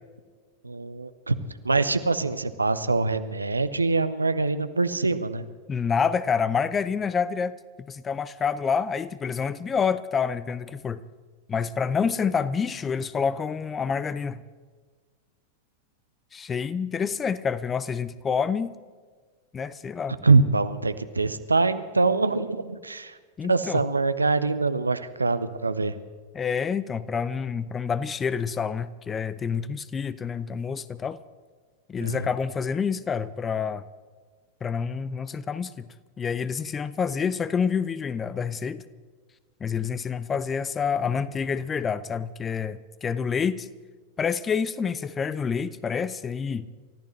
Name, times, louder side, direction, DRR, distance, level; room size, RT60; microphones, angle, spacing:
voice 1, 0.6-1.4 1.6-5.5 20.2-23.2 23.4-26.0 32.0-32.3, right 3 dB, 80° right, 12 dB, 0.8 m, -24 dB
voice 2, 5.7-11.0 11.5-14.4 16.3-18.7 19.5-20.2 23.4-23.8 26.3-31.2 31.9-33.8 34.6-35.9 36.2-38.8 39.6-43.7 44.2-46.7, left 6 dB, 20° left, 16 dB, 0.6 m, -28 dB
29.0 x 14.0 x 3.2 m, 1.5 s
figure-of-eight pair, 90°, 0 cm